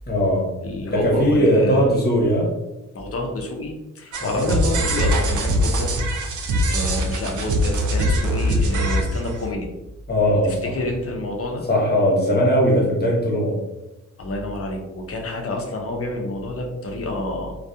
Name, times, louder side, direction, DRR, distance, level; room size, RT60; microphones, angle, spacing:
voice 1, 0.1-0.6 0.9-2.5 4.2-4.5 10.1-10.7 11.7-13.6, equal, 30° left, -3 dB, 0.9 m, -19 dB
voice 2, 0.6-1.8 2.9-5.9 6.7-9.7 10.4-11.7 14.2-17.6, left 2 dB, 45° left, 1 dB, 0.6 m, -28 dB
sound 1, 4.1-9.5, equal, 70° right, 0.5 m, -22 dB
2.7 x 2.3 x 2.2 m, 0.98 s
cardioid pair, 80°, 31 cm